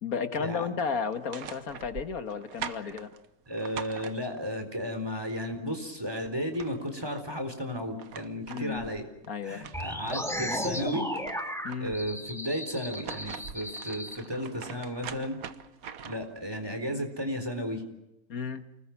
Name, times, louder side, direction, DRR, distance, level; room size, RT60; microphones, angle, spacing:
voice 1, 0.0-3.1 8.5-8.9 9.3-9.7 11.6-12.0 18.3-18.7, left 6 dB, 75° left, 8 dB, 2.1 m, -33 dB
sound 1, 1.1-4.6 6.1-6.2 6.4-7.2 7.8-10.4 10.8-12.1 12.7-16.4, right 7 dB, 70° right, 1.5 m, -43 dB
voice 2, 3.5-9.1 9.4-11.1 11.8-15.4 16.0-17.8, equal, 15° right, 6 dB, 4.1 m, -34 dB
sound 2, 9.7-14.2, equal, ahead, 2.5 m, -35 dB
29.0 x 20.5 x 6.0 m, 0.91 s
omnidirectional pair, 1.6 m